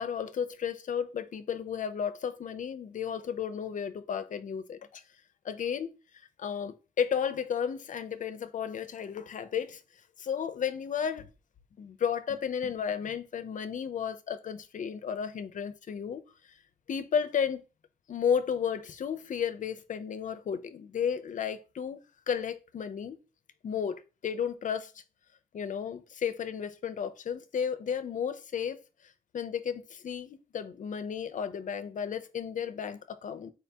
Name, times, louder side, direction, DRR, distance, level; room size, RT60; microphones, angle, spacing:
voice 1, 0.0-5.0 5.4-6.0 6.4-9.8 10.2-11.3 11.8-16.2 16.9-17.6 18.1-22.0 22.3-23.2 23.6-24.9 25.5-28.8 29.3-33.5, left 7 dB, 55° left, 0.5 m, -33 dB
4.3 x 2.7 x 3.4 m
wide cardioid pair, 150°, 16 cm